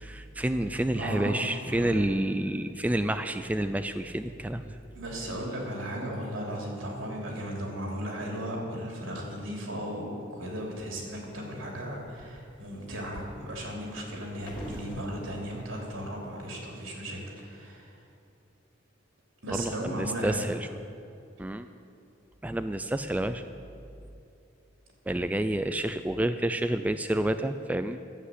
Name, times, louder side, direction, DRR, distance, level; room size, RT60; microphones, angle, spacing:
voice 1, 0.0-4.8 19.5-20.7 21.4-21.7 22.4-23.4 25.1-28.0, right 1 dB, 10° right, 9 dB, 0.3 m, -29 dB
voice 2, 0.9-2.1 4.9-18.0 19.4-20.5, equal, 90° right, -1 dB, 3.0 m, -36 dB
sound 1, 10.6-11.3 11.8-16.6, equal, 25° left, 2.5 m, -45 dB
12.5 x 7.9 x 8.2 m, 2.6 s
head